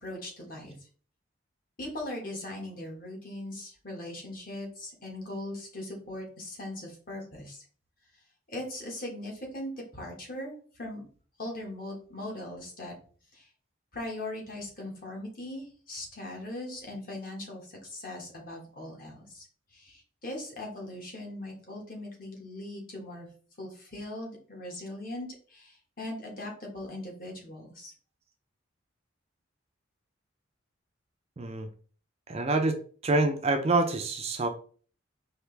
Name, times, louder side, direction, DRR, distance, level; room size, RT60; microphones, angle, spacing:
voice 1, 0.0-0.7 1.8-7.6 8.5-11.0 11.4-12.9 13.3-13.5 13.9-19.4 19.7-23.3 23.6-27.9, left 1 dB, 45° left, -1 dB, 1.5 m, -40 dB
voice 2, 31.4-31.7 32.3-32.8 33.0-34.5, right 2 dB, 30° right, 5 dB, 0.4 m, -26 dB
4.6 x 2.9 x 3.2 m, 0.43 s
head